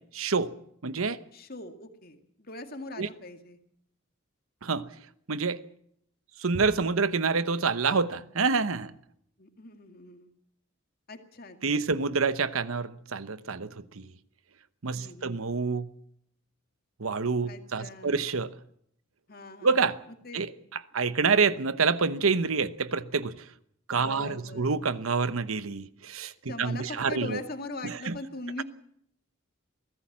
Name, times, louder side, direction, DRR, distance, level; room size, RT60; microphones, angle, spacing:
voice 1, 0.1-0.5 0.8-1.2 3.0-3.1 4.6-4.9 5.3-5.6 6.4-8.9 11.6-14.1 14.8-15.9 17.0-18.5 19.6-20.0 20.3-20.5 20.9-23.5 23.9-27.4 27.8-28.2, right 4 dB, 80° right, 1.0 m, -27 dB
voice 2, 1.3-3.6 9.4-10.3 11.1-11.9 15.0-15.4 17.4-18.3 19.3-19.8 20.1-20.5 24.0-24.7 26.5-28.6, left 2 dB, 45° left, 2.2 m, -41 dB
23.0 x 16.0 x 7.4 m
head